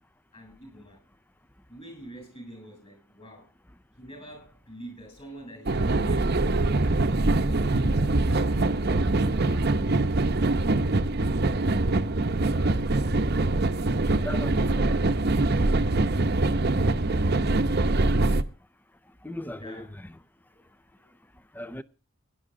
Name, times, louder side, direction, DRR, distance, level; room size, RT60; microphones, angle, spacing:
voice 1, 0.3-1.0 1.7-3.5 4.0-6.3 6.7-8.9 9.4-9.7 19.5-19.9 20.5-20.6 20.9-21.1, equal, 30° left, 7.5 m, -46 dB
sound 1, 5.7-18.4, right 2 dB, 50° right, 0.8 m, -24 dB
voice 2, 14.2-15.3 19.2-19.9 21.6-21.8, left 1 dB, 10° left, 0.5 m, -38 dB
17.0 x 11.0 x 3.7 m
head